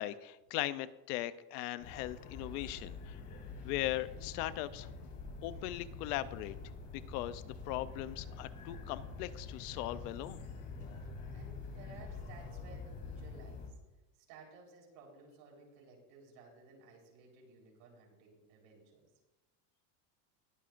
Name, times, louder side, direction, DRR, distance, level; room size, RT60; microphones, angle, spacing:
voice 1, 0.0-3.2 3.6-4.9 5.4-6.6 7.1-10.4, left 15 dB, 70° left, 14 dB, 0.7 m, -39 dB
sound 1, 1.8-13.7, left 4 dB, 35° left, 3.6 m, -46 dB
voice 2, 11.3-13.8 14.1-19.1, right 4 dB, 80° right, 0 dB, 4.2 m, -57 dB
20.0 x 8.9 x 2.6 m, 1.1 s
cardioid pair, 155°, 48 cm